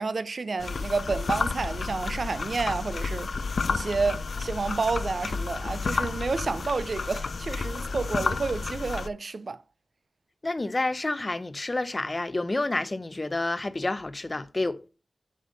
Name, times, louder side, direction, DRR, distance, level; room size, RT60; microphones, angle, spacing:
voice 1, 0.0-9.6, right 4 dB, 55° right, 0.6 m, -30 dB
sound 1, 0.6-9.1, left 4 dB, 70° left, 0.4 m, -31 dB
voice 2, 10.4-14.9, left 2 dB, 30° left, 0.6 m, -29 dB
6.6 x 5.3 x 5.3 m
wide cardioid pair, 70°, 0 cm